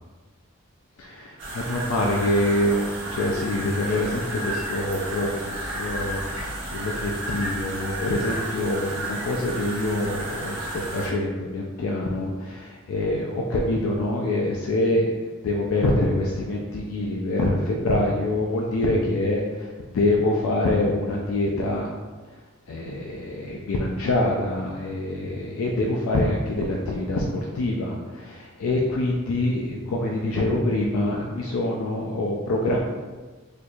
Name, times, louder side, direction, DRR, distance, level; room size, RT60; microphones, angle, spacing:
voice 1, 1.0-15.1 15.4-21.9 22.7-32.8, left 1 dB, 80° left, -1 dB, 0.4 m, -25 dB
sound 1, 1.4-11.1, right 1 dB, 60° right, 1.0 m, -32 dB
4.4 x 2.3 x 2.5 m, 1.3 s
head